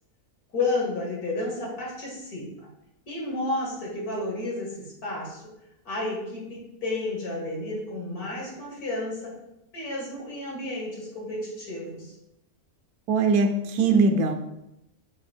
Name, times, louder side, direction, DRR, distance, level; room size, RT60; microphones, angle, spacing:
voice 1, 0.5-2.5 3.1-5.4 5.8-9.3 9.7-12.1, left 2 dB, 80° left, -3 dB, 2.5 m, -31 dB
voice 2, 13.1-14.3, right 4 dB, 80° right, 6 dB, 1.2 m, -21 dB
8.3 x 2.8 x 4.5 m, 0.86 s
omnidirectional pair, 1.6 m